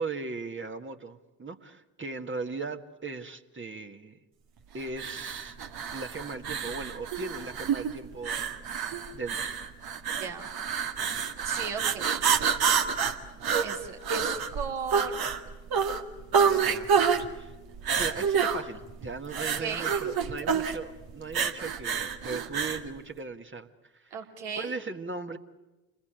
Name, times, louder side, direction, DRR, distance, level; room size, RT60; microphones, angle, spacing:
voice 1, 0.0-4.2 4.7-5.6 5.9-8.8 9.1-9.5 16.3-17.0 17.3-17.6 18.0-24.2 24.6-25.4, right 4 dB, 25° right, 6 dB, 1.9 m, -38 dB
sound 1, 4.9-22.9, right 7 dB, 55° right, 2.1 m, -28 dB
voice 2, 10.2-10.5 11.4-12.2 13.6-15.3 19.3-19.9 24.1-24.8, right 6 dB, 75° right, 1 dB, 3.4 m, -37 dB
28.5 x 21.0 x 9.1 m, 1.1 s
hypercardioid pair, 50°, 44 cm